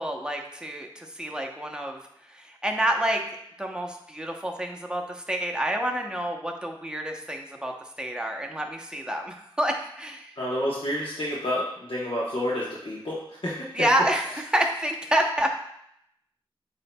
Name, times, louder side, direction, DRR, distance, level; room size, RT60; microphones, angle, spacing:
voice 1, 0.0-2.0 2.3-3.2 3.6-7.7 8.0-10.3 13.7-15.6, right 1 dB, 10° right, 1 dB, 0.8 m, -28 dB
voice 2, 10.4-13.6, left 1 dB, 60° left, -7 dB, 1.0 m, -29 dB
8.2 x 2.7 x 2.2 m, 0.75 s
cardioid pair, 45°, 10 cm